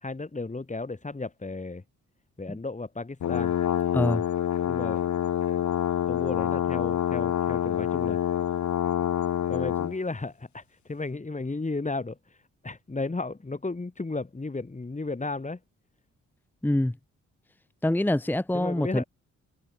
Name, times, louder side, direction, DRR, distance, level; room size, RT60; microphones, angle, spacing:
voice 1, 0.0-1.8 2.4-3.5 4.7-5.0 6.1-8.2 9.5-12.2 12.6-15.6 18.5-19.0, left 3 dB, 25° left, 4.8 m, -34 dB
sound 1, 3.2-10.0, left 10 dB, 65° left, 1.5 m, -27 dB
voice 2, 3.9-4.2 16.6-16.9 17.8-19.0, left 1 dB, 5° left, 1.1 m, -25 dB
cardioid pair, 75°, 31 cm